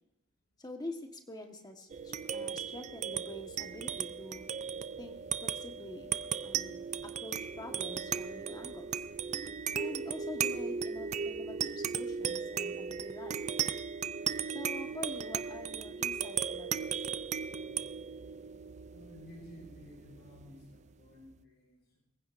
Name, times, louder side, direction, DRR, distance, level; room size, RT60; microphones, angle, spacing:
voice 1, 0.6-4.4 5.0-5.2 5.4-6.1 6.4-9.0 9.7-13.4 14.5-17.0, left 1 dB, 20° left, 4 dB, 1.4 m, -46 dB
sound 1, 1.9-20.8, right 7 dB, 35° right, 0.4 m, -36 dB
voice 2, 18.9-22.0, left 1 dB, 55° left, -2 dB, 6.0 m, -53 dB
24.0 x 15.5 x 2.6 m, 0.93 s
head